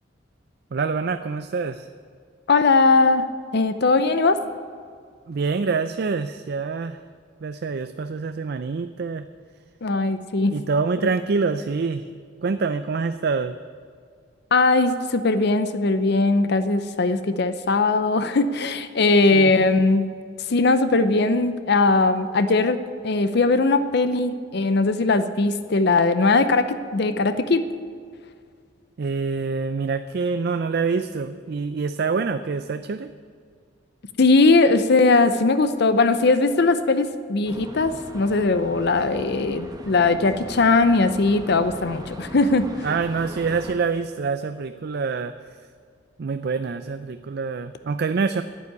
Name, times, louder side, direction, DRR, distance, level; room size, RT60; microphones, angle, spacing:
voice 1, 0.7-1.9 5.3-7.0 7.4-9.3 10.5-12.0 12.4-13.6 19.3-19.5 29.0-33.1 42.8-45.6 46.2-48.4, right 4 dB, 55° right, 10 dB, 0.4 m, -26 dB
voice 2, 2.5-4.4 9.8-10.6 14.5-20.1 20.5-22.8 23.0-27.6 34.2-42.9, left 3 dB, 60° left, 11 dB, 0.6 m, -20 dB
sound 1, 37.5-43.7, right 1 dB, 20° right, 1.1 m, -39 dB
11.0 x 8.4 x 9.5 m, 2.1 s
head